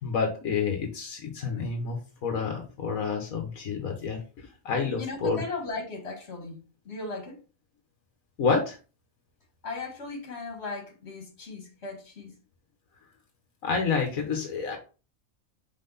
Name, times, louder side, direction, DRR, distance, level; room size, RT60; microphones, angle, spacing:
voice 1, 0.0-5.4 8.4-8.8 13.6-14.8, left 5 dB, 80° left, 1.6 m, -29 dB
voice 2, 5.0-7.4 9.6-12.3, left 3 dB, 50° left, 2.1 m, -37 dB
5.7 x 4.5 x 4.1 m
omnidirectional pair, 1.4 m